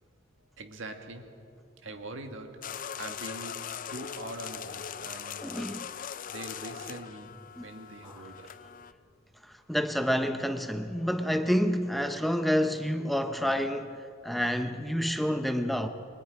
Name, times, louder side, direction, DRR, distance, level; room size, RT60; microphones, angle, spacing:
voice 1, 0.6-1.4 1.8-5.5 6.3-7.3 7.6-8.5, right 2 dB, 70° right, 1.9 m, -43 dB
sound 1, 2.6-8.9, left 8 dB, 45° left, 0.5 m, -40 dB
voice 2, 5.4-5.9 7.6-7.7 8.0-8.1 9.4-15.9, equal, ahead, 0.8 m, -29 dB
29.5 x 22.5 x 4.9 m
head